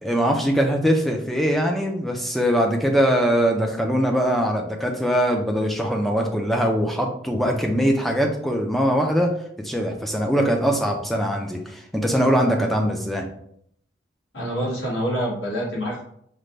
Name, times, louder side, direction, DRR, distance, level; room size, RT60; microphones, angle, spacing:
voice 1, 0.0-9.3 9.6-13.3, equal, ahead, 1 dB, 0.4 m, -22 dB
voice 2, 14.3-16.0, equal, 80° left, -5 dB, 1.6 m, -26 dB
5.0 x 2.2 x 3.2 m, 0.68 s
head